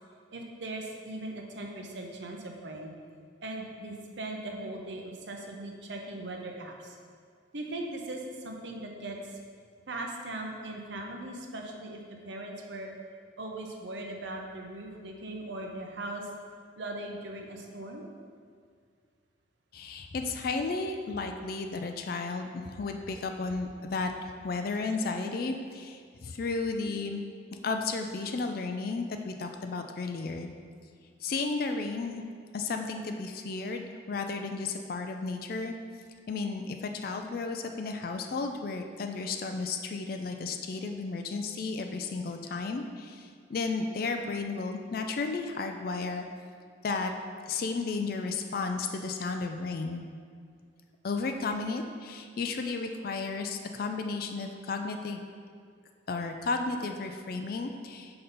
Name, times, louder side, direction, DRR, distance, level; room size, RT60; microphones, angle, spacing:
voice 1, 0.3-2.9 3.4-7.0 7.5-9.4 9.9-12.9 13.4-16.3 16.8-18.0 28.3-28.5, right 1 dB, 65° right, 1 dB, 0.8 m, -39 dB
voice 2, 19.7-27.2 27.6-30.5 31.2-32.2 32.5-35.8 36.3-46.2 46.8-47.1 47.5-50.0 51.0-55.2 56.1-58.2, left 3 dB, 50° left, 5 dB, 0.4 m, -33 dB
5.9 x 3.9 x 5.2 m, 2.1 s
head